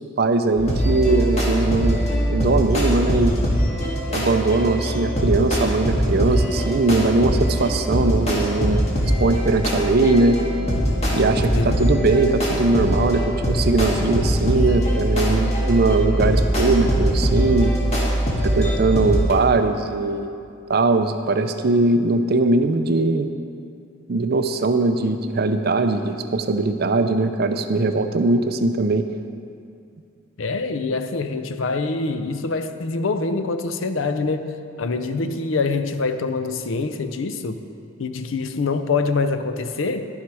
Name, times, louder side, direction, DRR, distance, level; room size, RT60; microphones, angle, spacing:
voice 1, 0.2-3.3 4.1-10.4 11.1-17.7 18.4-20.3 20.7-23.3 24.1-29.1, right 3 dB, 50° right, 8 dB, 0.5 m, -20 dB
sound 1, 0.6-19.3, equal, 35° left, 1.7 m, -22 dB
voice 2, 30.4-37.6 38.0-40.1, left 3 dB, 70° left, 9 dB, 0.6 m, -25 dB
11.0 x 7.2 x 4.7 m, 2.5 s
head